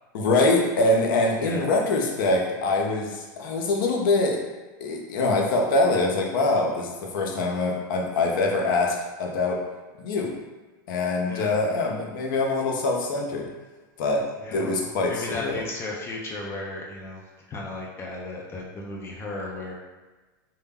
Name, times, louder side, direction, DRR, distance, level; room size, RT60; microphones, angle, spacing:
voice 1, 0.1-4.4 4.8-9.6 10.0-10.4 10.9-13.5 14.0-14.3 14.5-15.6, left 2 dB, 70° left, 1 dB, 0.5 m, -24 dB
voice 2, 14.4-14.8 15.1-17.2 17.5-19.8, left 2 dB, 20° left, -3 dB, 0.4 m, -35 dB
2.1 x 2.1 x 3.4 m, 1.2 s
supercardioid pair, 135°, 11 cm